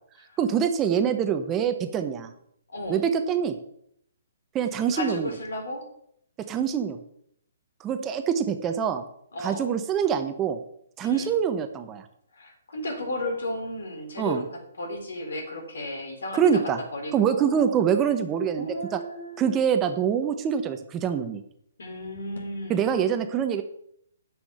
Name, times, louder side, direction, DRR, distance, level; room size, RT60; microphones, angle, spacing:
voice 1, 0.4-2.3 2.9-3.6 4.5-5.3 6.5-7.0 7.8-9.0 9.4-10.6 11.0-12.0 14.2-14.4 16.3-16.8 17.1-19.0 19.4-21.4 22.7-23.6, right 8 dB, 20° right, 8 dB, 1.1 m, -25 dB
voice 2, 2.7-3.1 4.9-5.9 9.3-9.7 11.0-11.4 12.3-16.6 16.9-17.7 18.6-19.6 21.8-22.9, left 1 dB, 75° left, 3 dB, 4.1 m, -34 dB
9.8 x 6.3 x 8.5 m, 0.71 s
hypercardioid pair, 135°, 0 cm